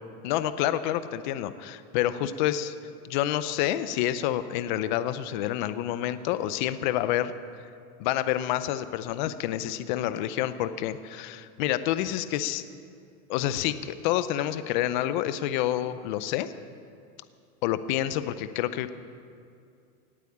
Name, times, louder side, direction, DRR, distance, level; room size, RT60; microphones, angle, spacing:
voice 1, 0.2-2.7 3.0-7.3 8.0-12.7 13.3-16.5 17.6-18.9, left 12 dB, 35° left, 13 dB, 0.5 m, -28 dB
18.0 x 8.4 x 8.6 m, 2.4 s
supercardioid pair, 160°, 45 cm